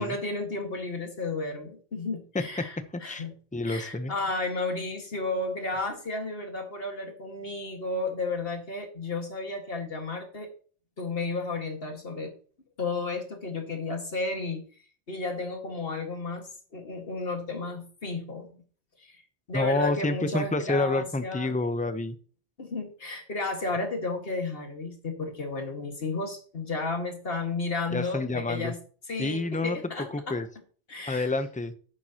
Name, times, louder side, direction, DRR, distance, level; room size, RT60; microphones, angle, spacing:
voice 1, 0.0-3.3 3.6-10.5 11.0-12.3 12.8-14.6 15.1-18.6 19.0-19.2 19.5-21.6 22.6-28.8 29.1-30.4 30.9-31.3, left 3 dB, 55° left, 4 dB, 2.1 m, -33 dB
voice 2, 3.5-4.1 19.5-22.1 27.9-28.7 29.2-29.8 30.1-30.5 31.1-31.7, left 2 dB, 10° left, 10 dB, 0.6 m, -28 dB
10.5 x 9.3 x 2.9 m, 0.42 s
omnidirectional pair, 1.2 m